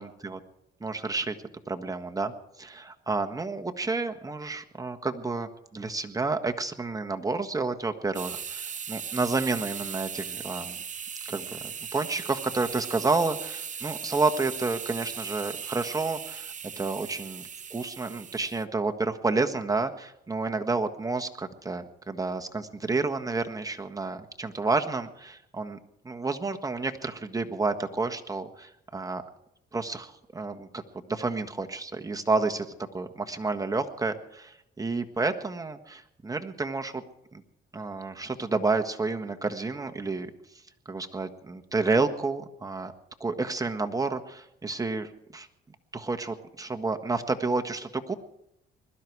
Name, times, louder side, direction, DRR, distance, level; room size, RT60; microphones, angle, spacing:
voice 1, 0.0-0.4 0.8-1.4 1.7-10.8 11.3-16.5 16.8-17.4 17.7-25.8 26.0-29.2 29.7-30.8 31.1-37.0 37.3-37.4 37.7-40.3 40.8-42.9 43.2-45.5 45.9-48.1, right 3 dB, 15° right, 5 dB, 1.5 m, -30 dB
sound 1, 8.1-18.6, right 7 dB, 40° right, 0.8 m, -38 dB
21.5 x 12.5 x 4.8 m, 0.80 s
cardioid pair, 90°, 20 cm